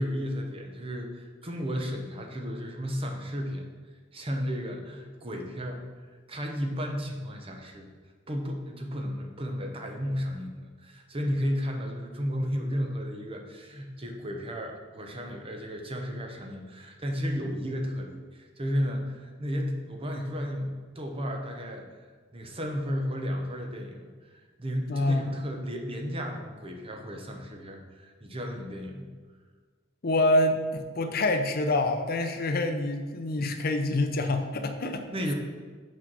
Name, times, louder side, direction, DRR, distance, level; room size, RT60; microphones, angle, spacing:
voice 1, 0.0-3.7 4.1-5.8 6.3-7.9 8.3-22.0 22.3-29.1 35.1-35.3, equal, 30° right, 2 dB, 0.9 m, -33 dB
voice 2, 24.9-25.3 30.0-35.0, left 2 dB, 50° left, 6 dB, 0.6 m, -26 dB
6.2 x 4.6 x 6.0 m, 1.5 s
head